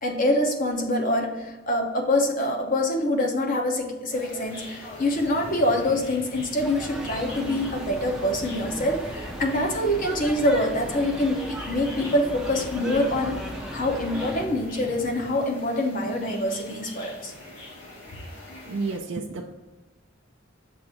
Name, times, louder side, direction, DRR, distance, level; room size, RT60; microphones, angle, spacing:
voice 1, 0.0-13.4 13.7-17.3, left 1 dB, 45° left, 2 dB, 0.9 m, -25 dB
sound 1, 4.1-19.0, left 1 dB, 70° left, 1.8 m, -42 dB
sound 2, 6.6-14.4, equal, 5° right, 0.5 m, -37 dB
voice 2, 18.7-19.5, right 3 dB, 65° right, 1 dB, 0.4 m, -30 dB
6.7 x 2.6 x 5.6 m, 1.2 s
head